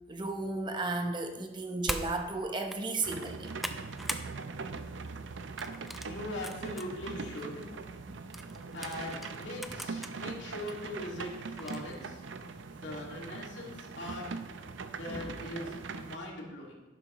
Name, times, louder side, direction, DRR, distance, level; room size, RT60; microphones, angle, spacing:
voice 1, 0.1-3.5 8.0-8.1 10.2-10.3 15.1-15.3, right 3 dB, 25° right, 4 dB, 0.8 m, -34 dB
sound 1, 1.9-2.1 2.6-2.8 3.2-4.3 4.7-4.9 5.6-6.9 7.4-7.5 8.3-10.1 10.7-10.8 11.6-11.9, equal, ahead, 0.4 m, -40 dB
sound 2, 3.0-16.2, right 4 dB, 75° right, 0.6 m, -41 dB
voice 2, 6.0-7.7 8.7-12.2 12.7-14.2 14.9-16.7, left 1 dB, 70° left, -2 dB, 2.3 m, -41 dB
11.5 x 10.5 x 3.1 m, 1.2 s
head